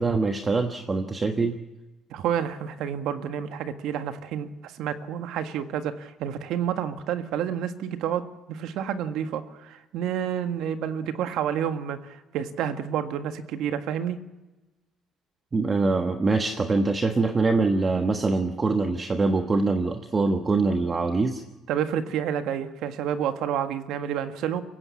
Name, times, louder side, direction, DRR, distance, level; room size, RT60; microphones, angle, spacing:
voice 1, 0.0-1.6 15.5-21.4, right 3 dB, 25° right, 6 dB, 1.3 m, -24 dB
voice 2, 2.1-8.2 8.5-14.2 21.7-24.6, right 9 dB, 75° right, 9 dB, 1.7 m, -29 dB
23.5 x 16.0 x 8.5 m, 1.1 s
cardioid pair, 130°, 0 cm